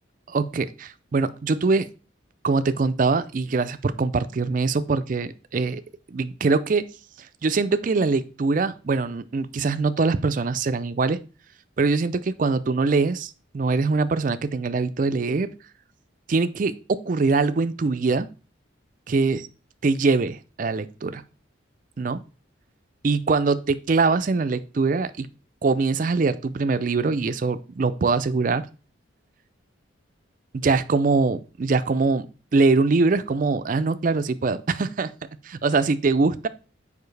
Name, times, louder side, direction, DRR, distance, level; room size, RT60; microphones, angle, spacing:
voice 1, 0.3-1.9 2.4-5.8 6.1-6.9 7.2-11.2 11.8-15.5 16.3-18.3 19.1-19.5 19.8-21.2 22.0-22.2 23.0-25.3 25.6-28.7 30.5-32.3 32.5-35.1 35.4-36.5, right 4 dB, 40° right, 13 dB, 0.4 m, -23 dB
6.9 x 5.0 x 3.2 m, 0.35 s
head